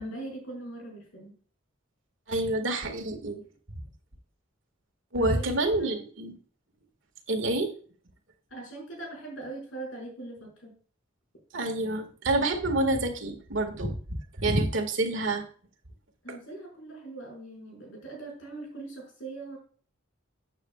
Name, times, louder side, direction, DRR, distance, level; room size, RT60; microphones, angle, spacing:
voice 1, 0.0-1.3 5.2-6.1 8.5-10.7 16.2-19.6, right 2 dB, 70° left, -1 dB, 5.3 m, -41 dB
voice 2, 2.3-3.4 5.1-6.3 7.3-7.7 11.5-15.4, right 2 dB, 70° right, 5 dB, 1.9 m, -28 dB
13.0 x 8.9 x 2.4 m, 0.43 s
head